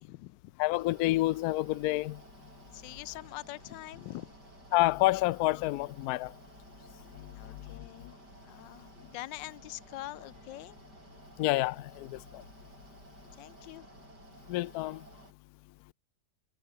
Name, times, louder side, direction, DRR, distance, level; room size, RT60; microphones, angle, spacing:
voice 1, 0.0-0.5 2.7-4.3 7.3-8.2 8.5-10.8 13.4-13.9, left 17 dB, 90° left, 1.3 m, -44 dB
voice 2, 0.6-2.2 4.7-6.3 11.4-12.4 14.5-15.0, left 18 dB, 70° left, 0.9 m, -28 dB
Mechanical fan, 0.7-15.3, right 2 dB, 65° right, 7.6 m, -54 dB
omnidirectional pair, 1.9 m